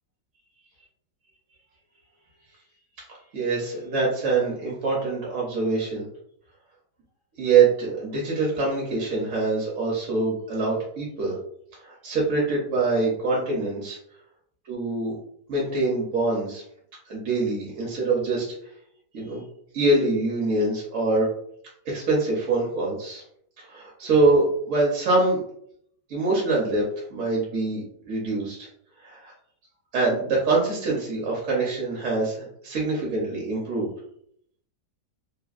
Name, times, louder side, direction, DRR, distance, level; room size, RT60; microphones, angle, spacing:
voice 1, 3.3-6.1 7.4-11.4 11.8-14.0 14.7-15.1 15.5-16.6 17.1-18.5 19.1-19.4 19.7-21.3 21.9-23.2 23.6-25.4 26.1-26.8 27.1-28.7 29.0-29.3 29.9-33.9, right 3 dB, 60° right, -4 dB, 0.9 m, -24 dB
3.3 x 2.2 x 2.4 m, 0.67 s
omnidirectional pair, 1.8 m